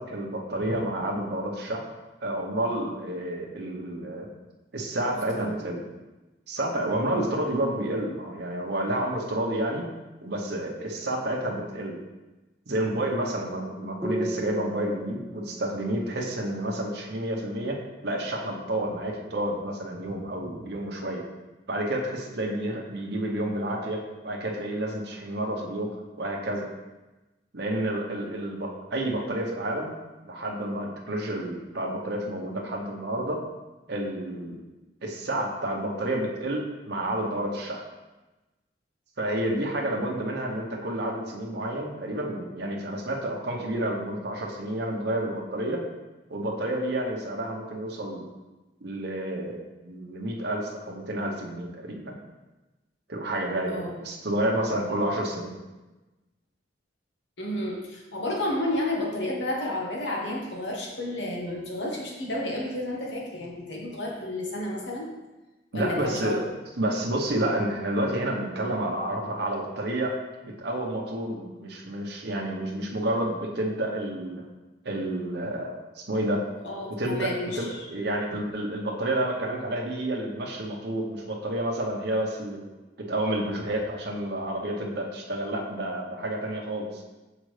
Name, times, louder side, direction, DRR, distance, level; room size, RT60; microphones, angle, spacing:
voice 1, 0.0-1.9 2.2-4.3 4.7-5.8 6.5-9.9 10.2-12.0 12.7-17.8 18.0-21.2 21.7-25.9 26.2-26.7 27.5-29.9 30.2-33.4 33.9-34.6 35.0-37.8 39.2-45.8 46.3-48.3 48.8-52.2 53.1-55.6 65.7-66.4 66.8-74.4 74.8-76.4 77.0-82.6 83.0-87.0, right 1 dB, 65° right, -1 dB, 0.9 m, -30 dB
sound 1, 14.0-17.5, right 1 dB, 15° right, 0.4 m, -37 dB
voice 2, 53.7-54.0 57.4-65.1 65.7-66.4 76.6-77.8, left 1 dB, 75° left, -2 dB, 1.4 m, -31 dB
6.4 x 5.0 x 3.3 m, 1.1 s
head